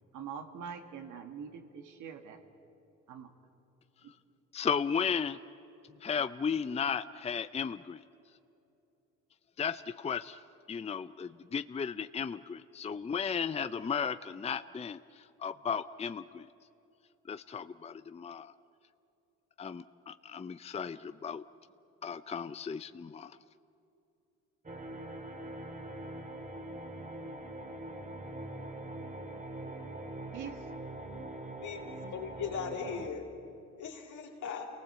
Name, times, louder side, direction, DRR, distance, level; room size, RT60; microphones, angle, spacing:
voice 1, 0.1-2.4 3.1-3.3 4.0-4.1 30.3-30.7, right 7 dB, 85° right, 6 dB, 2.1 m, -44 dB
voice 2, 4.5-5.4 6.0-8.0 9.6-10.4 10.7-16.5 17.3-18.5 19.6-21.4 22.0-23.4, left 6 dB, 20° left, 12 dB, 0.5 m, -35 dB
sound 1, 24.6-33.1, right 1 dB, 25° right, 2.2 m, -43 dB
voice 3, 31.6-33.3 33.7-34.7, left 6 dB, 75° left, 2 dB, 3.5 m, -39 dB
28.5 x 19.0 x 8.1 m, 2.8 s
cardioid pair, 90°, 30 cm